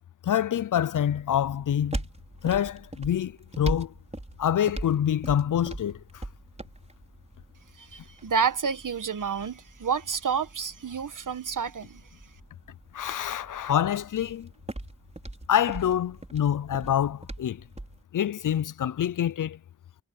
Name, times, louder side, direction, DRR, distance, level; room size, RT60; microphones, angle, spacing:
voice 1, 0.2-2.0 2.4-3.9 4.4-6.2 12.9-14.5 15.5-17.6 18.1-19.6, left 10 dB, 80° left, 0.5 m, -26 dB
sound 1, 1.0-18.0, right 1 dB, 20° right, 5.5 m, -41 dB
voice 2, 7.8-12.0, right 6 dB, 80° right, 1.5 m, -29 dB
wide cardioid pair, 95°, 31 cm